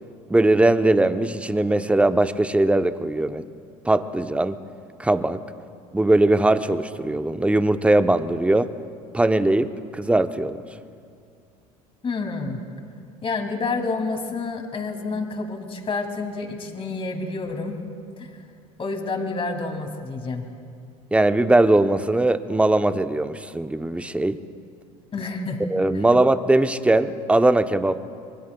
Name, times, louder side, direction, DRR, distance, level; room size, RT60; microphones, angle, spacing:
voice 1, 0.3-3.4 3.8-4.6 5.0-5.4 5.9-8.7 9.1-10.6 21.1-24.4 25.7-28.0, right 2 dB, 5° right, 10 dB, 0.7 m, -20 dB
voice 2, 12.0-12.6 13.2-17.8 18.2-18.3 18.8-20.5 25.1-25.6 25.9-26.1, left 3 dB, 30° left, 3 dB, 2.7 m, -29 dB
26.0 x 23.0 x 2.3 m, 2.4 s
hypercardioid pair, 75°, 18 cm